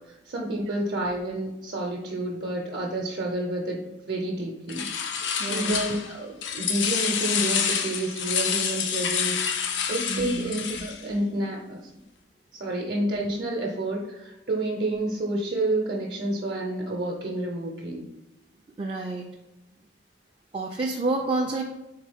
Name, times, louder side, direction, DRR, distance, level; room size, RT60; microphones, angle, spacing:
voice 1, 0.1-3.8 4.1-4.8 5.5-11.8 12.6-18.1, right 1 dB, 60° right, -2 dB, 0.6 m, -29 dB
sound 1, 4.7-6.1 6.4-11.0, left 7 dB, 80° left, 0.5 m, -28 dB
voice 2, 5.4-5.8 10.1-10.5 18.8-19.3 20.5-21.6, right 2 dB, 30° right, -1 dB, 0.3 m, -29 dB
3.7 x 3.6 x 3.4 m, 0.99 s
head